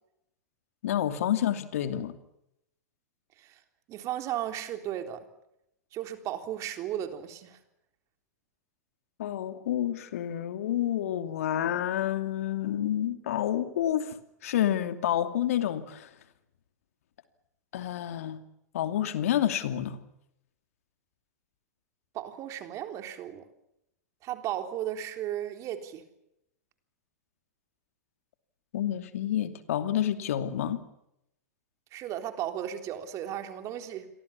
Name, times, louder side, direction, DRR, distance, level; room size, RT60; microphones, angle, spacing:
voice 1, 0.8-2.2 9.2-14.1 14.4-16.1 17.7-18.4 18.7-20.0 28.7-30.8, left 11 dB, 65° left, 9 dB, 2.7 m, -29 dB
voice 2, 3.9-5.3 5.9-7.6 22.1-23.5 24.2-26.0 31.9-34.1, right 11 dB, 35° right, 7 dB, 3.7 m, -35 dB
29.0 x 23.0 x 7.3 m, 0.82 s
figure-of-eight pair, 100°, 9 cm